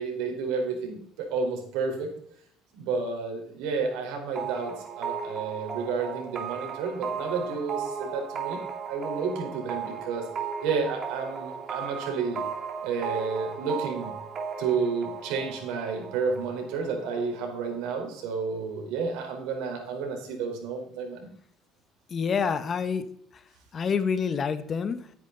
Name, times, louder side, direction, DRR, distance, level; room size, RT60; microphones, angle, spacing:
voice 1, 0.0-2.1 2.7-8.6 8.9-10.3 10.6-12.4 12.8-14.1 14.6-21.3, right 5 dB, 80° right, 3 dB, 4.1 m, -31 dB
sound 1, 4.4-17.9, right 6 dB, 40° right, 2.8 m, -36 dB
voice 2, 22.1-23.1 23.3-23.4 23.7-25.1, left 6 dB, 35° left, 12 dB, 1.2 m, -27 dB
13.0 x 9.6 x 4.0 m, 0.65 s
cardioid pair, 110°, 0 cm